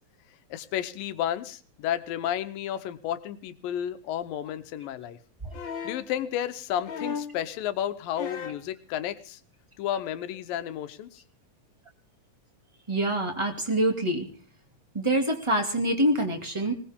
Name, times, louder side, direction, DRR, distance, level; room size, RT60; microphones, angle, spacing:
voice 1, 0.5-5.2 5.8-9.4 9.8-11.2, left 11 dB, 85° left, 11 dB, 2.7 m, -32 dB
sound 1, 5.5-6.1 6.8-7.4 8.1-8.7 9.9-10.0, left 6 dB, 50° left, 1.5 m, -35 dB
voice 2, 12.9-14.3 14.9-16.7, right 1 dB, 10° right, 4 dB, 1.7 m, -25 dB
20.5 x 19.5 x 3.6 m, 0.41 s
omnidirectional pair, 3.9 m